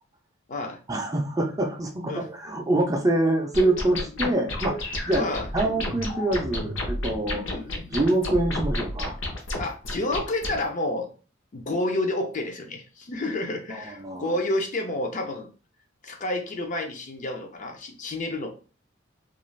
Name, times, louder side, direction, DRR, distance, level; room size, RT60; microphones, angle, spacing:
voice 1, 0.9-7.4 7.9-9.2 13.7-14.4, right 2 dB, 20° right, 2 dB, 0.4 m, -25 dB
sound 1, 3.5-10.6, left 1 dB, 65° left, 0.8 m, -31 dB
voice 2, 5.1-5.5 7.4-7.7 9.6-11.1 11.5-15.5 16.0-18.5, left 2 dB, 40° left, 3 dB, 0.5 m, -29 dB
2.4 x 2.4 x 3.1 m, 0.36 s
head